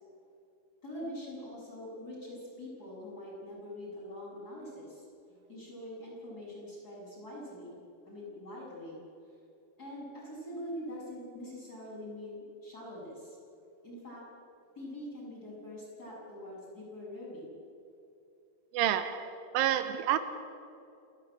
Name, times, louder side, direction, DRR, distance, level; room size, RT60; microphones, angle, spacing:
voice 1, 0.8-5.0 5.5-7.8 8.1-9.0 9.8-13.4 13.8-14.3 14.8-17.6, left 1 dB, 20° left, -5 dB, 7.3 m, -44 dB
voice 2, 18.7-20.2, right 11 dB, 90° right, 11 dB, 3.4 m, -29 dB
29.5 x 11.5 x 9.0 m, 2.7 s
omnidirectional pair, 5.6 m